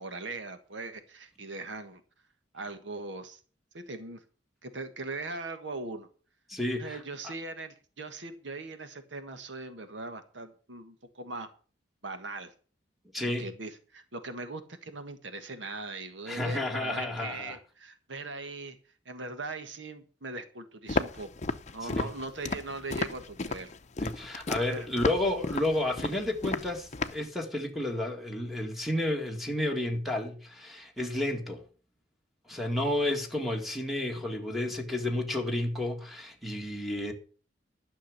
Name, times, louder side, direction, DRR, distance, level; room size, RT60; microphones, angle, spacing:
voice 1, 0.0-2.0 2.5-3.4 3.7-4.2 4.6-6.1 6.8-11.5 12.0-12.5 13.2-18.8 19.0-21.3 21.7-23.7 24.6-24.9, right 3 dB, 80° right, 1.5 m, -40 dB
voice 2, 6.5-7.0 7.2-7.3 13.1-13.5 16.3-17.6 21.8-22.1 24.0-31.6 32.5-37.1, left 1 dB, ahead, 2.0 m, -31 dB
Walk footsteps, 20.9-27.3, left 3 dB, 40° left, 0.7 m, -33 dB
12.0 x 6.3 x 8.0 m
head